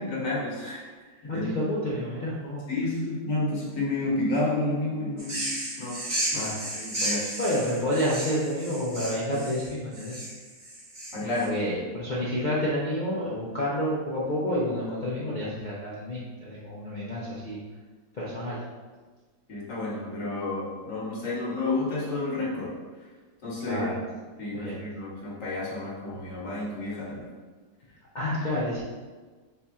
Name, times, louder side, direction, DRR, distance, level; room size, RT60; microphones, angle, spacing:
voice 1, 0.0-0.8 1.3-1.5 2.7-5.5 5.8-6.0 6.3-7.3 11.1-11.5 19.5-22.7 23.4-23.9 24.4-27.2, left 2 dB, 50° left, -5 dB, 1.4 m, -30 dB
voice 2, 1.3-2.6 6.3-6.5 7.4-10.1 11.3-17.6 18.1-18.6 23.7-23.9 24.5-24.8 28.1-28.8, equal, 80° left, -7 dB, 0.4 m, -29 dB
sound 1, 5.2-11.5, right 1 dB, 35° right, 0.8 m, -33 dB
4.2 x 3.4 x 3.5 m, 1.4 s
omnidirectional pair, 1.9 m